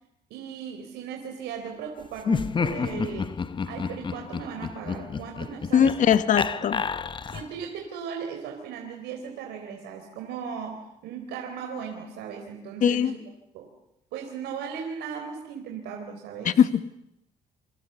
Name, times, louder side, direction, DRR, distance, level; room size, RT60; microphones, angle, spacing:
voice 1, 0.3-3.3 3.6-6.0 7.3-13.2 13.5-13.7 14.1-16.5, right 7 dB, 85° right, 3 dB, 4.1 m, -37 dB
Laughter, 2.2-7.6, left 5 dB, 30° left, 1.0 m, -30 dB
voice 2, 5.7-6.8 12.8-13.1 16.4-16.9, left 8 dB, 50° left, 12 dB, 1.3 m, -21 dB
28.0 x 24.5 x 7.0 m, 0.82 s
cardioid pair, 110°, 17 cm